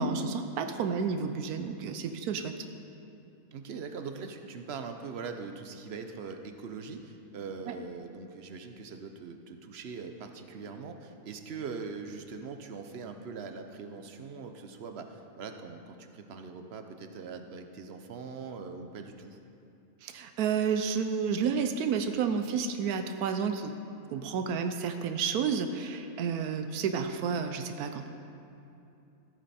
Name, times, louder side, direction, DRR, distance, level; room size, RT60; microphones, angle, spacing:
voice 1, 0.0-2.5 7.7-7.8 20.0-23.7 24.1-28.1, right 6 dB, 80° right, 7 dB, 1.1 m, -30 dB
voice 2, 3.5-19.4, right 5 dB, 55° right, 6 dB, 0.9 m, -42 dB
14.5 x 8.7 x 4.2 m, 2.8 s
omnidirectional pair, 1.6 m